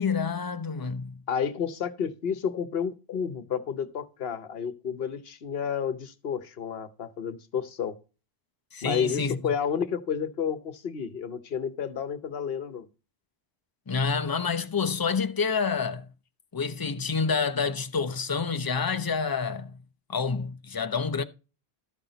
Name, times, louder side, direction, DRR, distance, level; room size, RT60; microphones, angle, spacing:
voice 1, 0.0-1.2 8.7-9.4 13.9-16.1 16.5-19.8 20.1-21.2, left 5 dB, 25° left, 0.6 m, -28 dB
voice 2, 1.3-8.0 8.8-12.9, left 7 dB, 65° left, 1.1 m, -31 dB
13.0 x 5.9 x 4.0 m
omnidirectional pair, 1.1 m